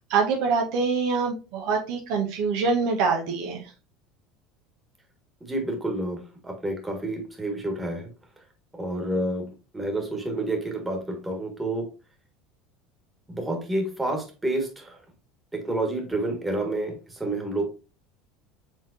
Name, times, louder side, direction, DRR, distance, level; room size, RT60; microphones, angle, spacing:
voice 1, 0.1-3.7, right 5 dB, 70° right, 2 dB, 0.9 m, -25 dB
voice 2, 5.4-8.1 8.7-11.9 13.3-15.0 15.5-17.7, right 1 dB, 10° right, 3 dB, 1.5 m, -29 dB
4.6 x 3.7 x 2.6 m, 0.32 s
hypercardioid pair, 85°, 0 cm